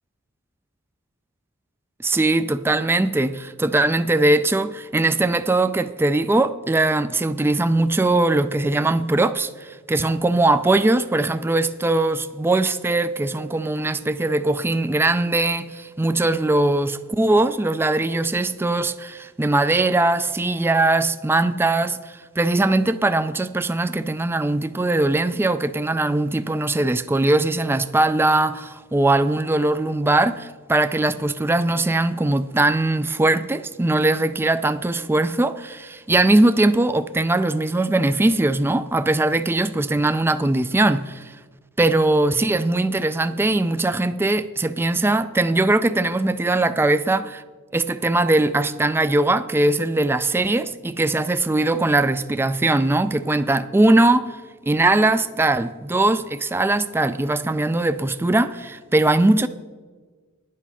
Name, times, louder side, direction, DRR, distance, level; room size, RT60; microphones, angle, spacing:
voice 1, 2.0-41.4 41.8-47.4 47.7-54.4 54.6-59.5, right 2 dB, 10° right, 0.3 m, -20 dB
11.0 x 8.4 x 5.5 m
head